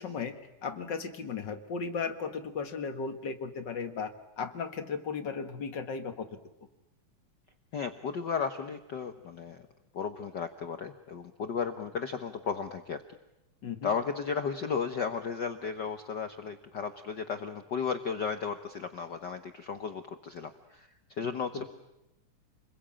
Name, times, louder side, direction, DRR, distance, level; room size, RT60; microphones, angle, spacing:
voice 1, 0.0-6.3 13.6-13.9 21.5-21.6, left 5 dB, 40° left, 7 dB, 1.9 m, -36 dB
voice 2, 7.7-9.6 9.9-13.0 13.8-20.9 21.2-21.6, left 6 dB, 90° left, 8 dB, 0.9 m, -34 dB
28.5 x 21.5 x 8.9 m, 0.93 s
omnidirectional pair, 3.6 m